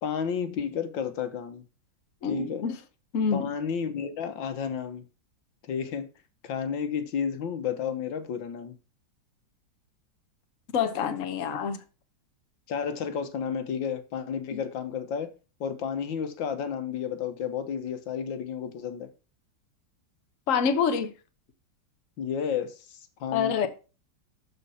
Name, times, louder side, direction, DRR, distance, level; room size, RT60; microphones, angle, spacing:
voice 1, 0.0-1.6 2.3-2.7 3.3-5.1 5.7-6.1 6.4-8.8 12.7-15.3 15.6-19.1 22.2-23.7, left 7 dB, 85° left, 1.9 m, -32 dB
voice 2, 2.2-2.8 3.1-3.5 10.7-11.8 14.5-14.6 20.5-21.1 23.3-23.7, left 6 dB, 50° left, 1.2 m, -26 dB
12.5 x 4.5 x 5.6 m
omnidirectional pair, 2.0 m